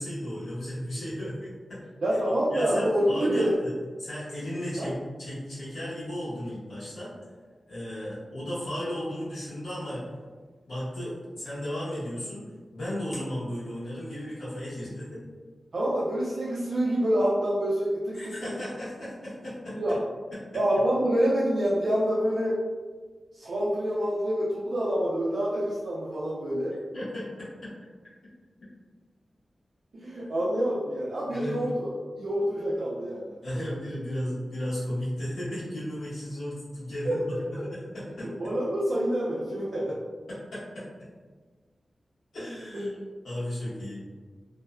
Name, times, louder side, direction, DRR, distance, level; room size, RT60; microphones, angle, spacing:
voice 1, 0.0-1.8 2.2-3.7 4.0-7.1 7.7-10.1 10.7-12.5 12.7-15.2 18.1-19.8 20.3-20.4 26.9-27.7 30.5-30.7 31.3-31.6 33.4-37.2 37.7-38.3 40.3-40.9 42.3-43.0 43.2-44.0, equal, 85° left, -10 dB, 1.2 m, -35 dB
voice 2, 2.0-3.5 4.8-4.9 15.7-18.3 19.7-20.0 20.5-22.6 23.3-26.8 29.9-31.9 32.2-33.7 37.0-37.2 37.5-37.6 38.2-40.0 42.7-42.8, equal, 70° right, -7 dB, 0.4 m, -27 dB
2.7 x 2.1 x 2.4 m, 1.4 s
wide cardioid pair, 115°, 0 cm